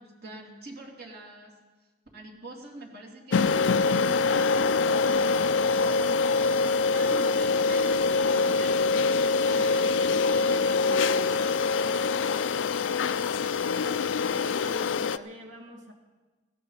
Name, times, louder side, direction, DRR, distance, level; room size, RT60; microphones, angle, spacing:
voice 1, 0.0-1.6 2.1-12.2, right 2 dB, 60° right, -1 dB, 3.0 m, -45 dB
sound 1, 3.3-15.2, left 4 dB, 70° left, 0.4 m, -24 dB
voice 2, 13.7-15.9, left 1 dB, 80° right, 1 dB, 2.3 m, -45 dB
19.0 x 16.0 x 4.1 m, 1.3 s
head